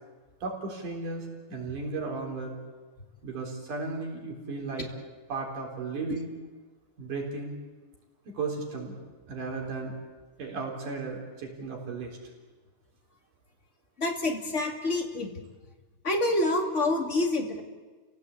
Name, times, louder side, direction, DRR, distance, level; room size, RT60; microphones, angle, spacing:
voice 1, 0.4-2.6 3.2-4.9 5.3-6.3 7.0-7.6 8.3-9.0 9.3-9.9 10.4-12.2, right 3 dB, 85° right, 0 dB, 5.4 m, -35 dB
voice 2, 14.0-15.3 16.0-17.6, left 2 dB, 25° left, 2 dB, 2.5 m, -27 dB
30.0 x 17.5 x 8.4 m, 1.4 s
omnidirectional pair, 3.5 m